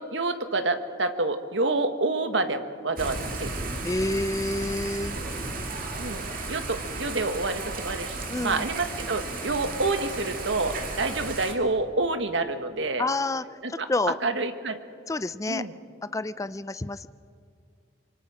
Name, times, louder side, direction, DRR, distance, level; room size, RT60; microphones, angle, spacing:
voice 1, 0.0-3.6 6.0-13.1 13.6-13.9 14.2-14.8 15.5-15.8, right 3 dB, 75° right, 8 dB, 1.5 m, -28 dB
Thunder / Rain, 3.0-11.5, right 3 dB, 45° right, 2.3 m, -34 dB
voice 2, 3.8-5.2 8.3-8.6 13.0-13.4 13.9-14.2 15.1-15.6 16.1-17.1, left 2 dB, 15° left, 14 dB, 0.4 m, -28 dB
26.5 x 24.0 x 4.9 m, 2.4 s
head